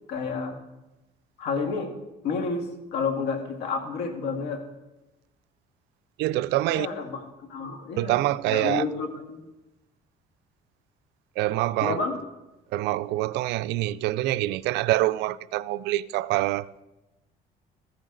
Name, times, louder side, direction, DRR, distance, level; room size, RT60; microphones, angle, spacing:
voice 1, 0.1-0.6 1.4-1.9 2.2-4.6 6.7-9.4 11.8-12.2, left 5 dB, 85° left, 1.8 m, -30 dB
voice 2, 6.2-6.9 8.0-8.8 11.4-12.0 12.7-16.8, right 16 dB, 85° right, 0.4 m, -25 dB
14.5 x 9.1 x 3.9 m
cardioid pair, 110°, 17 cm